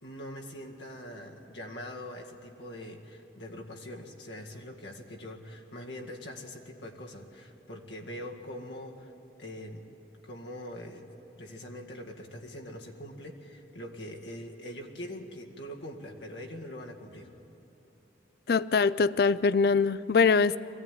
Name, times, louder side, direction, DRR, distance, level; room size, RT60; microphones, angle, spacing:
voice 1, 0.0-9.1 9.4-9.9 10.2-11.0 11.4-17.4, left 1 dB, 80° left, 1 dB, 2.0 m, -43 dB
voice 2, 18.5-20.6, left 5 dB, 60° left, 18 dB, 0.4 m, -23 dB
22.0 x 16.0 x 9.3 m, 3.0 s
head